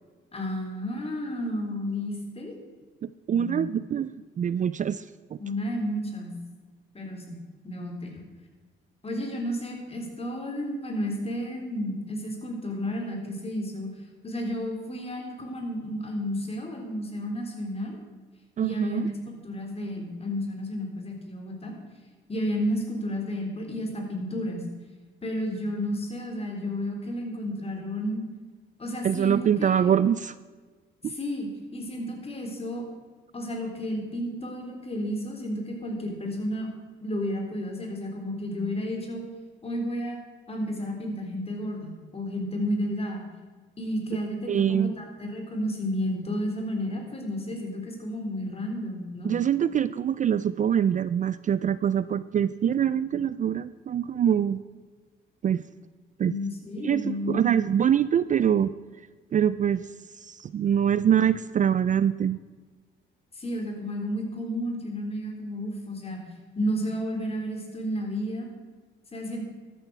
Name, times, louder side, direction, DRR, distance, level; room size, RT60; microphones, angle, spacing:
voice 1, 0.3-2.5 3.3-3.6 5.4-6.3 6.9-7.4 7.6-8.1 9.0-13.9 14.2-18.0 18.6-19.1 19.4-21.7 22.3-24.6 25.2-28.2 28.8-29.9 31.0-32.8 33.3-36.7 37.0-39.2 39.6-40.2 40.5-43.2 43.8-49.3 53.1-53.2 56.2-57.5 63.3-66.2 66.5-68.5 69.1-69.4, equal, 30° left, 1 dB, 3.5 m, -32 dB
voice 2, 3.0-5.1 18.6-19.1 29.0-30.3 31.0-31.1 44.5-44.9 49.2-54.6 55.4-55.6 56.2-56.4 56.8-58.7 59.3-59.9 60.2-62.4, right 9 dB, 40° right, 16 dB, 0.4 m, -24 dB
13.0 x 8.4 x 6.7 m, 1.4 s
cardioid pair, 90°, 20 cm